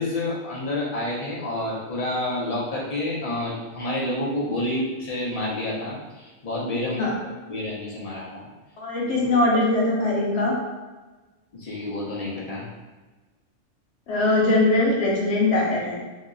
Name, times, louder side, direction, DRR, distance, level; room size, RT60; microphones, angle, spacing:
voice 1, 0.0-7.0 7.5-8.5 9.0-9.4 11.5-12.7, left 1 dB, 40° left, -5 dB, 0.6 m, -29 dB
voice 2, 8.8-10.5 14.1-16.1, left 2 dB, 65° left, -4 dB, 1.0 m, -21 dB
2.9 x 2.8 x 2.5 m, 1.2 s
omnidirectional pair, 1.4 m